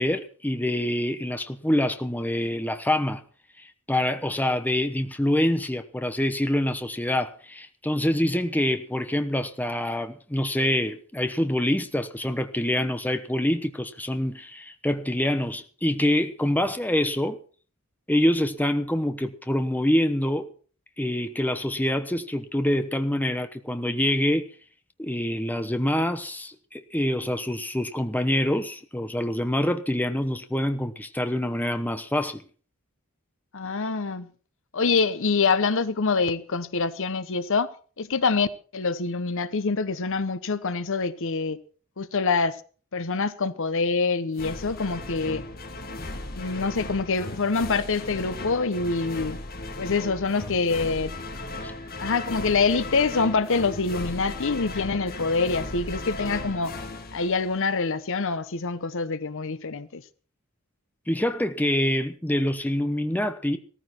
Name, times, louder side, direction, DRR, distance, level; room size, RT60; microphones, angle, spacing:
voice 1, 0.0-3.2 3.9-17.4 18.1-20.5 21.0-24.5 25.0-32.4 51.6-51.7 61.1-63.6, left 1 dB, 10° left, 1.0 m, -26 dB
voice 2, 33.5-34.3 34.7-37.7 38.0-41.6 42.0-42.6 42.9-45.4 46.4-49.4 49.8-51.1 52.0-56.7 57.1-60.0, left 4 dB, 60° left, 0.9 m, -25 dB
sound 1, 44.4-58.0, left 2 dB, 45° left, 1.9 m, -36 dB
16.0 x 14.0 x 4.4 m
head